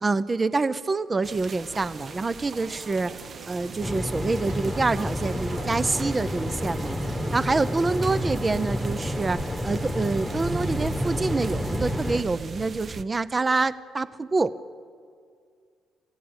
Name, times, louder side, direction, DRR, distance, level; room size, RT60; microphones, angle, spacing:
voice 1, 0.0-3.2 3.5-7.0 7.3-9.4 9.6-14.5, right 3 dB, 20° right, 15 dB, 0.6 m, -26 dB
sound 1, 1.2-13.0, right 5 dB, 40° right, 0.9 m, -38 dB
sound 2, 1.5-7.8, right 5 dB, 85° right, 2.5 m, -46 dB
sound 3, 3.8-12.2, left 1 dB, 10° left, 1.2 m, -30 dB
27.5 x 17.0 x 8.8 m, 2.2 s
cardioid pair, 135°, 0 cm